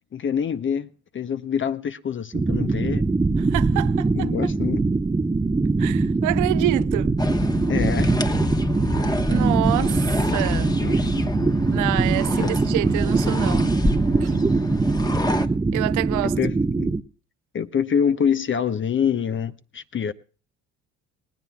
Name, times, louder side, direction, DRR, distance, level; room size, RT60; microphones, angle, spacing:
voice 1, 0.1-3.0 4.1-4.8 7.7-8.2 10.8-11.1 12.4-12.5 16.4-17.0 17.5-20.1, left 7 dB, 35° left, 0.7 m, -25 dB
sound 1, 2.3-17.0, right 3 dB, 10° right, 0.6 m, -22 dB
voice 2, 3.5-4.3 5.8-7.2 9.3-10.0 10.3-10.8 11.7-13.8 14.2-14.4 15.7-16.4, right 18 dB, 65° right, 0.6 m, -27 dB
sound 2, 7.2-15.5, left 2 dB, 10° left, 1.1 m, -27 dB
19.5 x 18.5 x 2.3 m
supercardioid pair, 70°, 33 cm